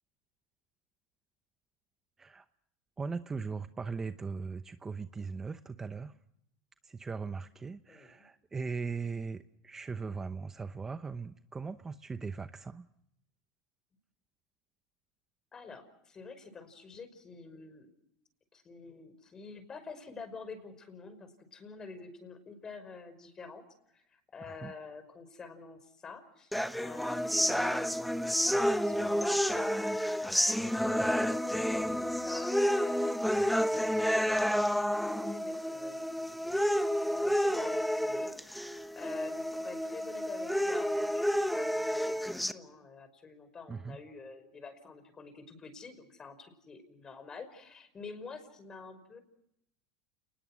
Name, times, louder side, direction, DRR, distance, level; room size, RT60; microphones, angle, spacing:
voice 1, 3.0-6.1 6.8-12.8 24.5-24.7 43.7-44.0, right 4 dB, 15° right, 10 dB, 0.9 m, -39 dB
voice 2, 7.9-8.2 15.5-17.9 18.5-23.6 23.9-34.3 34.6-36.6 37.1-49.2, left 4 dB, 25° left, 11 dB, 5.5 m, -48 dB
sound 1, 26.5-42.5, equal, ahead, 1.2 m, -30 dB
29.5 x 20.5 x 6.3 m, 0.77 s
supercardioid pair, 115°, 3 cm